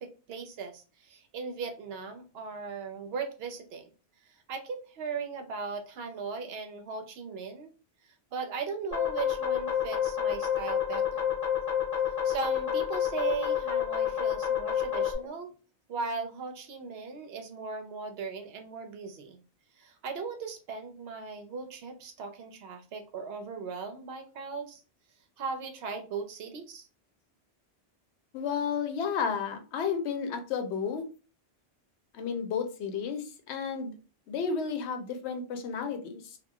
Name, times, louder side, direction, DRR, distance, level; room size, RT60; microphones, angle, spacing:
voice 1, 0.0-3.9 4.5-7.7 8.3-11.3 12.2-15.5 15.9-19.4 19.8-24.8 25.4-26.9, right 5 dB, 70° right, 6 dB, 0.8 m, -38 dB
sound 1, 8.9-15.1, left 9 dB, 20° left, 0.8 m, -29 dB
voice 2, 28.3-31.1 32.1-33.9 34.3-36.4, left 6 dB, 85° left, 7 dB, 0.8 m, -32 dB
2.9 x 2.2 x 2.2 m, 0.34 s
omnidirectional pair, 1.1 m